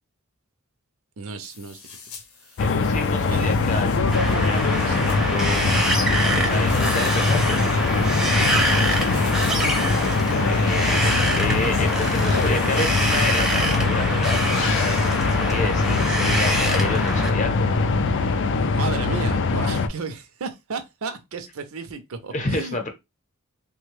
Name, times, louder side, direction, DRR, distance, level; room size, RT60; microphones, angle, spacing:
voice 1, 1.2-2.0 2.4-2.6 3.3-3.5 4.9-5.0 8.5-9.0 18.5-22.9, right 4 dB, 70° right, 0.6 m, -34 dB
sound 1, 1.4-2.2 2.6-5.2 6.2-13.2, left 4 dB, 90° left, 0.8 m, -36 dB
sound 2, 2.6-19.9, left 3 dB, 55° left, 0.4 m, -22 dB
voice 2, 2.6-4.1 4.3-5.6 5.9-7.7 10.2-17.7 22.3-22.9, left 2 dB, 35° left, 0.8 m, -30 dB
Wind, 4.1-17.3, right 1 dB, 5° right, 0.6 m, -26 dB
3.2 x 2.2 x 3.2 m
head